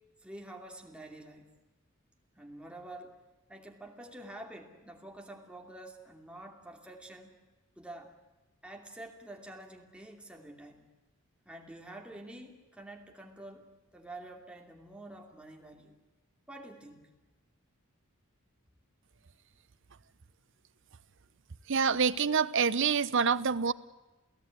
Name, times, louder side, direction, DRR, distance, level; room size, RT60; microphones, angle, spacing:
voice 1, 0.2-1.5 2.4-3.2 3.5-7.4 7.8-8.2 8.6-10.9 11.4-16.0 16.5-17.1, right 1 dB, 5° right, 1 dB, 2.8 m, -48 dB
voice 2, 21.7-23.7, right 6 dB, 60° right, 15 dB, 0.8 m, -26 dB
29.0 x 16.0 x 9.5 m, 1.1 s
head